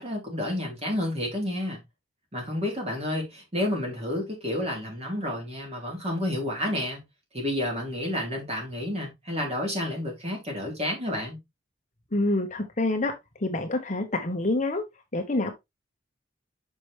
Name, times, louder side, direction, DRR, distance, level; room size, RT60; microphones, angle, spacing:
voice 1, 0.0-1.8 2.3-7.0 7.3-11.4, left 1 dB, 35° right, 3.7 m, -30 dB
voice 2, 12.1-13.1 13.4-14.8 15.1-15.5, left 2 dB, 40° left, 1.2 m, -26 dB
6.0 x 6.0 x 3.3 m
head